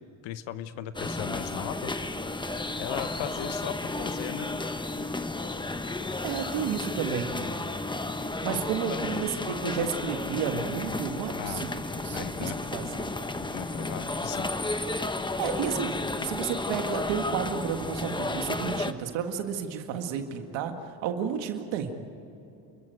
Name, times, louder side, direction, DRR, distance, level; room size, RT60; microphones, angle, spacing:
voice 1, 0.0-1.9 2.8-4.5 8.5-8.6 8.9-9.2 11.4-11.7 12.1-12.6 13.4-14.5, left 11 dB, 80° left, 12 dB, 1.2 m, -37 dB
sound 1, 0.9-18.9, left 2 dB, 10° left, 1.0 m, -33 dB
voice 2, 5.9-7.4 8.4-13.1 15.1-21.9, right 7 dB, 90° right, 5 dB, 1.9 m, -32 dB
29.5 x 14.5 x 9.3 m, 2.8 s
cardioid pair, 105°, 44 cm